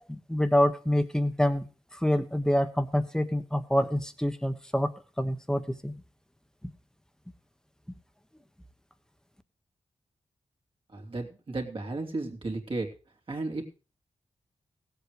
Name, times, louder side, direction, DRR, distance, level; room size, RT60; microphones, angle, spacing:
voice 1, 0.0-1.7 1.9-4.9 5.2-5.9 6.6-6.7, equal, 5° left, 9 dB, 1.3 m, -26 dB
voice 2, 10.9-12.9 13.3-13.7, right 2 dB, 50° right, 2 dB, 2.9 m, -34 dB
17.0 x 8.3 x 5.0 m, 0.35 s
cardioid pair, 70°, 12 cm